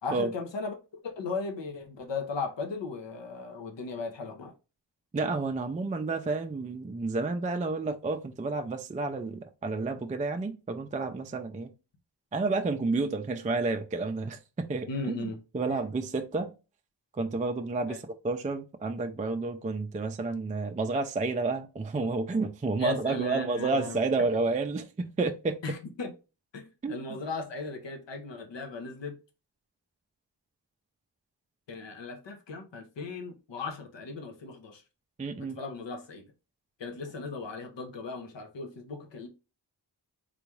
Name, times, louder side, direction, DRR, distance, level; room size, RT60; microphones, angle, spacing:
voice 1, 0.0-0.7 1.0-4.5 14.9-15.4 15.7-15.8 17.9-18.0 22.8-24.0 25.6-26.1 26.5-29.1 31.7-34.8 35.4-36.2 36.8-39.3, left 4 dB, 80° left, 0.8 m, -37 dB
voice 2, 5.1-11.7 12.3-16.5 17.1-25.6 26.8-27.2 35.2-35.6, right 3 dB, 20° right, 0.3 m, -30 dB
3.9 x 2.3 x 3.0 m
wide cardioid pair, 75°, 43 cm